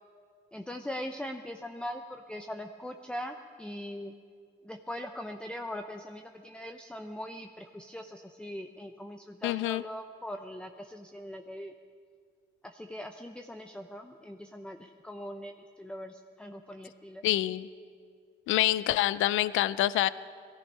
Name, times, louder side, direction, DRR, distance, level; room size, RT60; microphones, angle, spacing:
voice 1, 0.5-4.1 4.6-11.7 12.6-17.2, left 1 dB, 5° left, 5 dB, 0.6 m, -41 dB
voice 2, 9.4-9.8 17.2-17.7 18.5-20.1, left 15 dB, 80° left, 17 dB, 0.4 m, -26 dB
18.5 x 14.0 x 5.5 m, 2.1 s
cardioid pair, 90°, 20 cm